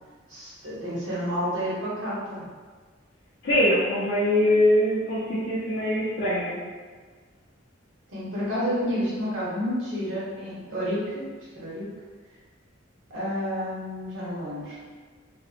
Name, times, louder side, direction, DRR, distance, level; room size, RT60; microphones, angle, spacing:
voice 1, 0.3-2.5 8.1-11.2 11.5-11.8 13.1-14.8, equal, 85° right, -9 dB, 1.1 m, -30 dB
voice 2, 3.4-6.6, left 1 dB, 75° left, -9 dB, 0.5 m, -22 dB
2.7 x 2.1 x 2.4 m, 1.5 s
head